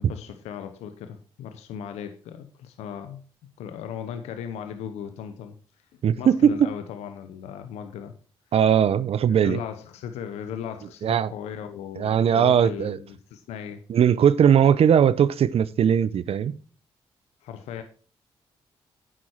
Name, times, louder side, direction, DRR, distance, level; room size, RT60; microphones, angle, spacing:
voice 1, 0.0-3.2 3.6-5.5 6.2-8.1 9.4-13.8 17.4-17.8, left 8 dB, 85° left, 0.9 m, -37 dB
voice 2, 6.0-6.7 8.5-9.6 11.0-11.3 12.0-13.0 13.9-16.5, right 8 dB, 65° right, 0.7 m, -19 dB
9.5 x 7.7 x 4.6 m
supercardioid pair, 50°, 11 cm